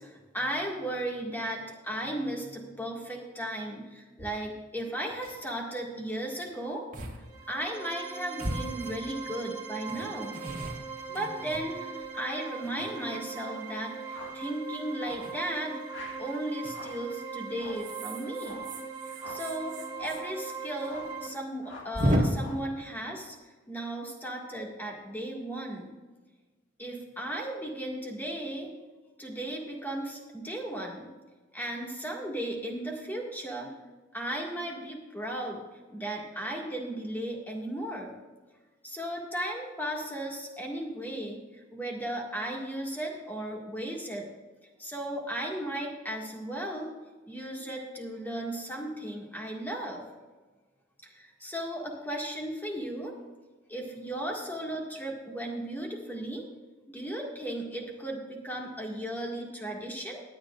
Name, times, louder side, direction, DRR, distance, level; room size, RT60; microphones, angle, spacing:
voice 1, 0.0-6.9 7.5-10.4 11.1-15.7 16.2-18.6 19.1-23.4 23.7-25.9 26.8-28.7 29.2-31.1 31.5-33.7 34.1-35.6 35.9-38.2 38.8-44.3 44.8-46.9 47.3-50.0 51.1-53.2 53.7-56.5 56.9-60.2, right 1 dB, 10° left, -1 dB, 1.8 m, -35 dB
sound 1, 4.2-4.3 4.8-4.9 5.1-5.5 6.3-6.5 6.9-7.2 7.5-7.6 8.4-9.3 9.9-12.1 12.6-13.4 15.1-15.4 16.6-17.0 17.7-20.6 20.8-20.9 21.2-21.3 21.9-22.2, equal, 45° right, 2.0 m, -34 dB
sound 2, 7.2-21.3, right 6 dB, 25° right, 1.7 m, -40 dB
sound 3, 14.1-14.4 15.0-15.3 15.9-16.3 16.7-17.1 17.5-17.9 18.4-18.7 19.2-19.5 19.9-20.3 20.8-21.2 21.6-22.0 22.4-22.7, left 2 dB, 75° left, 1.9 m, -46 dB
17.0 x 10.5 x 2.4 m, 1.3 s
head